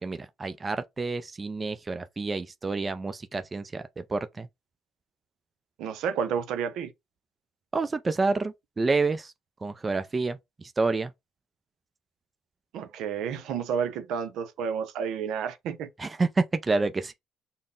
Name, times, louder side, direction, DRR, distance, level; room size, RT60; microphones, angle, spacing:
voice 1, 0.0-3.8 4.1-4.5 7.7-9.3 9.6-10.4 10.8-11.1 16.0-17.1, right 3 dB, 25° right, 0.4 m, -28 dB
voice 2, 5.8-6.9 12.7-15.9, right 7 dB, 80° right, 0.6 m, -30 dB
3.8 x 2.1 x 3.8 m
cardioid pair, 105°, 0 cm